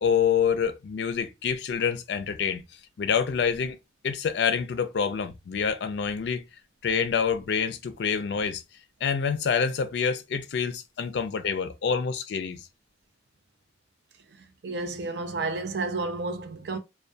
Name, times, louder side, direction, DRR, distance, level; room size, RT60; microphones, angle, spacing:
voice 1, 0.0-2.6 3.0-3.8 4.0-6.4 6.8-8.6 9.0-12.6, left 6 dB, 70° left, 0.4 m, -27 dB
voice 2, 14.6-16.8, right 3 dB, 65° right, 0.4 m, -31 dB
2.2 x 2.1 x 2.6 m
head